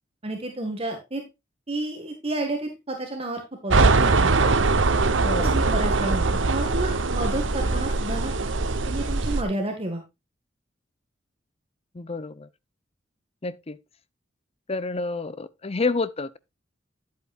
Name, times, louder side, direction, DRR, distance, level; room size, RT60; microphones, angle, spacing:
voice 1, 0.2-1.2 1.7-4.3 5.4-6.3 6.5-8.3 8.9-10.0, right 2 dB, 30° right, 1.9 m, -31 dB
sound 1, 3.7-9.4, right 3 dB, 80° right, 1.0 m, -22 dB
voice 2, 5.2-5.6 11.9-12.5 13.4-13.8 14.7-16.4, left 3 dB, 30° left, 0.7 m, -29 dB
10.5 x 8.4 x 2.5 m
head